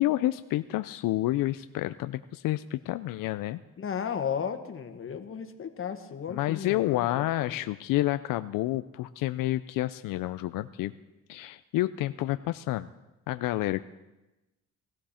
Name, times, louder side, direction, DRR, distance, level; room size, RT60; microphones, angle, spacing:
voice 1, 0.0-3.6 6.3-10.9 11.3-12.9 13.3-13.8, left 16 dB, 80° left, 12 dB, 0.5 m, -29 dB
voice 2, 3.8-7.6, left 7 dB, 40° left, 7 dB, 1.5 m, -35 dB
20.0 x 15.0 x 4.3 m, 1.0 s
cardioid pair, 115°, 32 cm